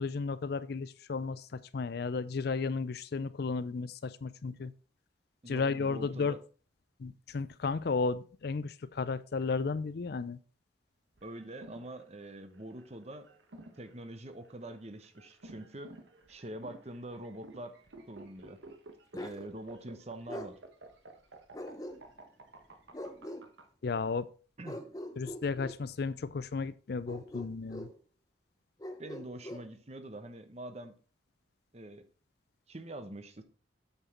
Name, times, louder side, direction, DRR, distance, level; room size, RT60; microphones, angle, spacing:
voice 1, 0.0-4.7 5.5-6.4 7.0-10.4 23.8-24.3 25.2-27.9, left 4 dB, 55° left, 15 dB, 0.4 m, -34 dB
voice 2, 5.4-6.4 11.2-13.3 13.8-15.9 16.3-17.7 18.1-18.6 19.2-20.6 24.6-24.8 29.0-30.9 31.7-32.0 32.7-33.4, right 1 dB, 35° right, 9 dB, 1.0 m, -44 dB
sound 1, 11.2-23.6, right 2 dB, 75° right, 1.3 m, -52 dB
Bark, 19.1-19.4 20.3-20.5 21.5-22.3 22.9-23.5 24.6-25.8 27.1-28.0 28.8-29.7, left 1 dB, 20° left, 0.9 m, -42 dB
8.1 x 6.1 x 4.4 m, 0.38 s
head